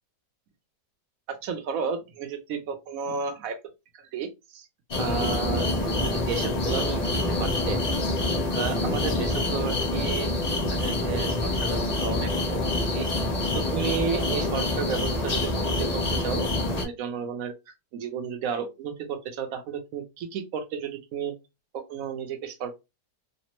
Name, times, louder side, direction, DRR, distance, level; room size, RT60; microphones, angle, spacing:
voice 1, 1.3-3.6 3.9-4.7 5.0-5.7 5.9-7.8 8.5-10.3 10.7-12.7 12.9-13.1 13.5-16.5 16.8-17.5 17.9-21.3 21.7-22.8, right 6 dB, 65° right, 0.9 m, -33 dB
sound 1, 4.9-16.8, left 2 dB, 70° left, 0.3 m, -26 dB
3.3 x 2.0 x 2.9 m
omnidirectional pair, 1.8 m